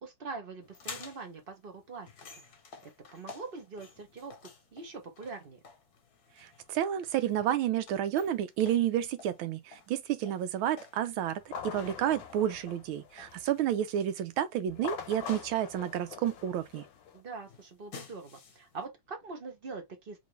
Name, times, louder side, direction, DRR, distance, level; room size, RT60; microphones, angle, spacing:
voice 1, 0.0-2.1 2.8-4.4 4.7-5.6 17.1-20.2, right 4 dB, 35° right, 1.1 m, -43 dB
sound 1, 0.6-18.8, left 5 dB, 55° left, 1.3 m, -52 dB
voice 2, 6.4-16.8, right 11 dB, 85° right, 1.5 m, -30 dB
sound 2, 11.4-13.6 14.7-17.2, left 7 dB, 70° left, 1.5 m, -44 dB
3.8 x 3.0 x 3.1 m
omnidirectional pair, 2.2 m